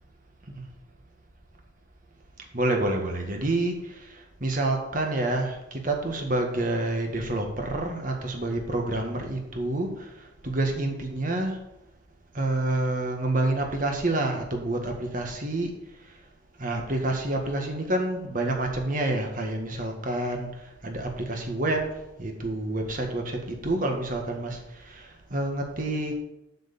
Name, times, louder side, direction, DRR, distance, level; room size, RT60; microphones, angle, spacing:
voice 1, 2.5-10.1 10.4-11.6 12.3-15.7 16.6-20.5 20.8-26.1, right 2 dB, 45° right, 3 dB, 1.5 m, -28 dB
7.9 x 5.0 x 7.0 m, 0.89 s
head